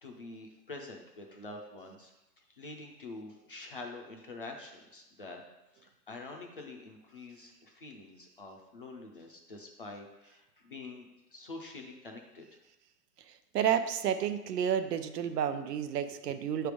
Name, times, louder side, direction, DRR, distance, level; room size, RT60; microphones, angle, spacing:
voice 1, 0.0-5.4 5.7-12.6, left 2 dB, 35° left, 2 dB, 0.4 m, -46 dB
voice 2, 13.3-16.7, right 9 dB, 80° right, 10 dB, 0.7 m, -31 dB
6.1 x 3.4 x 4.8 m, 0.99 s
hypercardioid pair, 165°, 48 cm